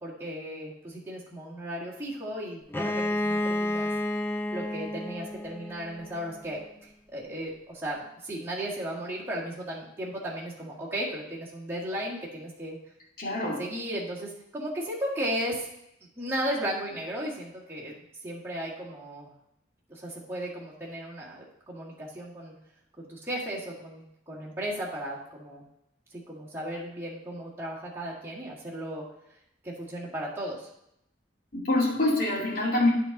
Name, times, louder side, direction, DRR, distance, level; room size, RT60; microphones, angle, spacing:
voice 1, 0.0-3.9 4.5-12.8 13.4-15.7 16.2-17.9 18.2-19.3 19.9-22.5 23.0-25.6 26.1-29.0 29.6-30.7, right 1 dB, 15° right, -7 dB, 1.8 m, -35 dB
Bowed string instrument, 2.7-6.4, left 1 dB, 10° left, 0.3 m, -31 dB
voice 2, 13.2-13.6 31.5-32.9, left 2 dB, 45° left, -5 dB, 2.3 m, -25 dB
8.8 x 3.9 x 5.9 m, 0.79 s
head